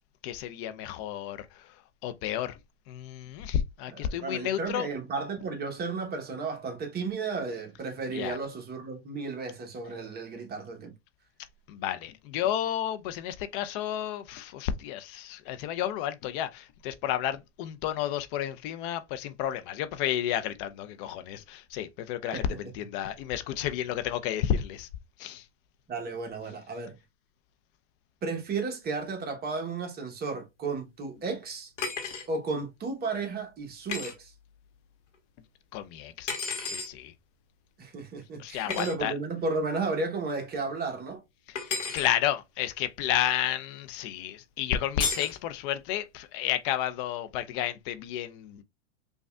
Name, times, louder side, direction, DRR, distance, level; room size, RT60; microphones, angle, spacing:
voice 1, 0.2-1.4 2.0-2.5 2.9-4.9 8.1-8.3 11.7-22.4 22.8-24.9 25.2-25.4 35.7-36.3 36.7-37.1 38.4-39.1 41.9-48.6, left 11 dB, 50° left, 0.6 m, -31 dB
voice 2, 3.9-10.9 22.3-22.7 25.9-27.0 28.2-31.7 32.3-34.3 37.8-41.2, right 4 dB, 25° right, 0.9 m, -33 dB
sound 1, 31.8-32.3 33.9-34.1 36.3-36.9 38.7-38.9 41.5-42.1 45.0-45.4, left 5 dB, 90° left, 1.2 m, -32 dB
5.1 x 2.4 x 2.2 m
hypercardioid pair, 105°, 35 cm